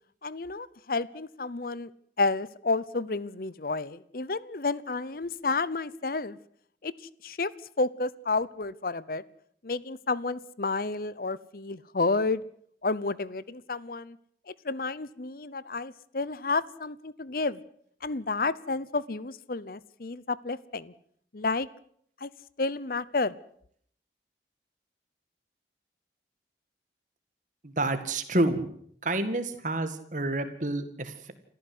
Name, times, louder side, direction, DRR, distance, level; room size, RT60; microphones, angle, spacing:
voice 1, 0.2-1.9 2.2-6.4 6.8-7.5 7.8-9.2 9.6-12.4 12.8-14.2 14.5-17.6 18.0-20.9 21.3-21.7 22.2-22.3 22.6-23.3, left 3 dB, 50° left, 19 dB, 0.8 m, -31 dB
voice 2, 27.6-28.6 29.0-31.3, right 2 dB, 45° right, 9 dB, 2.1 m, -29 dB
27.5 x 14.0 x 8.0 m, 0.65 s
head